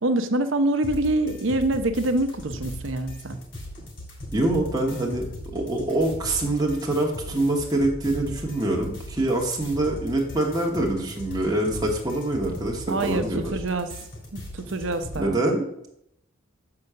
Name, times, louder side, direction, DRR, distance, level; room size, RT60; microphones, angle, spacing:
voice 1, 0.0-3.4 12.9-13.9 14.3-15.4, right 2 dB, 65° right, 9 dB, 0.8 m, -25 dB
sound 1, 0.8-15.3, left 1 dB, 60° left, 3.4 m, -39 dB
voice 2, 4.3-5.3 5.5-13.5 15.2-15.6, right 1 dB, 20° right, -1 dB, 1.2 m, -25 dB
6.8 x 4.8 x 6.7 m, 0.76 s
head